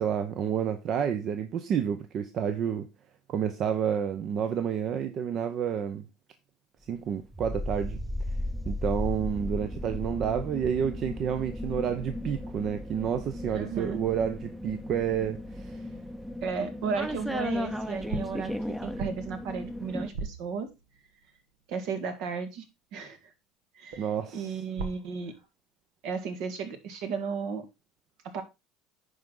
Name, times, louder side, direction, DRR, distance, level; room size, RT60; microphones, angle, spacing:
voice 1, 0.0-2.9 3.3-6.1 6.9-8.0 8.6-15.9 24.0-24.6, right 8 dB, 45° right, 0.8 m, -30 dB
sound 1, 7.3-20.1, left 1 dB, 5° right, 0.7 m, -35 dB
voice 2, 13.5-14.0 16.4-20.7 21.7-22.7 22.9-23.2 23.7-24.1 24.3-25.3 26.0-27.7 28.2-28.4, right 5 dB, 65° right, 2.0 m, -34 dB
sound 2, 18.1-21.2 23.9-25.4, right 4 dB, 85° right, 1.7 m, -41 dB
10.5 x 4.8 x 3.8 m
cardioid pair, 125°, 0 cm